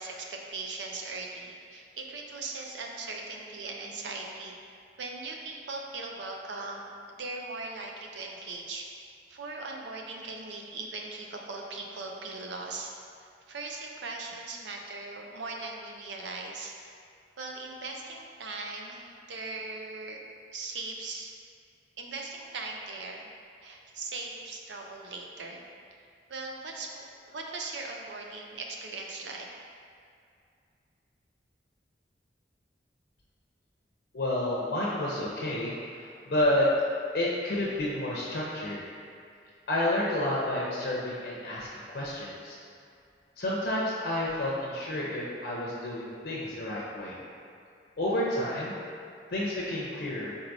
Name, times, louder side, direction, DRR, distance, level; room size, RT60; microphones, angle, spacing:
voice 1, 0.0-4.5 5.0-8.9 9.3-16.7 17.4-20.2 20.5-21.3 22.0-23.3 23.6-25.6 26.3-29.5, right 3 dB, 85° right, 1 dB, 0.5 m, -39 dB
voice 2, 34.1-36.7 37.1-38.8 39.7-42.6 43.4-47.2 48.0-48.8 49.3-50.4, left 1 dB, 65° left, -5 dB, 0.6 m, -30 dB
4.6 x 4.0 x 2.6 m, 2.4 s
head